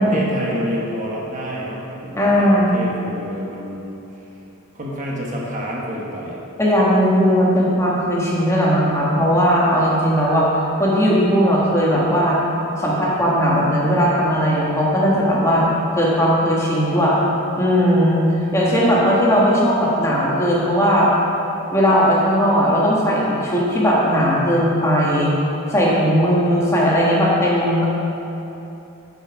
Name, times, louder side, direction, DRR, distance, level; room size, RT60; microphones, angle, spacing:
voice 1, 0.0-4.0 4.7-6.4 18.9-19.1, equal, 35° right, -3 dB, 1.1 m, -28 dB
voice 2, 2.1-2.9 6.6-10.5 10.8-12.4 12.8-15.6 16.0-17.2 17.6-21.1 21.7-25.3 25.7-27.8, equal, 15° left, -5 dB, 1.2 m, -17 dB
9.8 x 5.7 x 4.6 m, 3.0 s
head